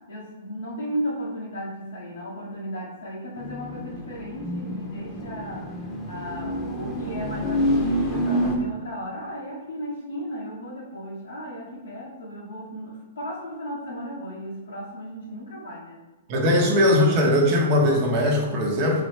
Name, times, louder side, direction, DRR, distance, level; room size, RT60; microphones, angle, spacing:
voice 1, 0.1-5.7 6.1-16.0 16.3-16.6, equal, 80° left, -6 dB, 0.9 m, -35 dB
sound 1, 3.4-8.6, equal, 20° left, 0.9 m, -28 dB
voice 2, 16.3-19.0, left 1 dB, 45° right, 1 dB, 0.9 m, -20 dB
3.8 x 3.2 x 3.2 m, 1.2 s
hypercardioid pair, 120°, 0 cm